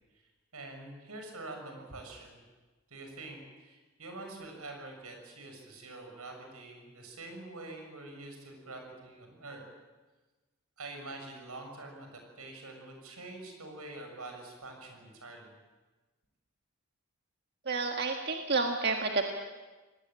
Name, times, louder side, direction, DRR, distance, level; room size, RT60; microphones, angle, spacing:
voice 1, 0.5-2.4 2.9-9.6 10.8-15.5, right 2 dB, 80° right, 3 dB, 6.8 m, -46 dB
voice 2, 17.6-19.3, right 3 dB, 45° right, 3 dB, 1.6 m, -30 dB
27.5 x 19.5 x 8.8 m, 1.2 s
head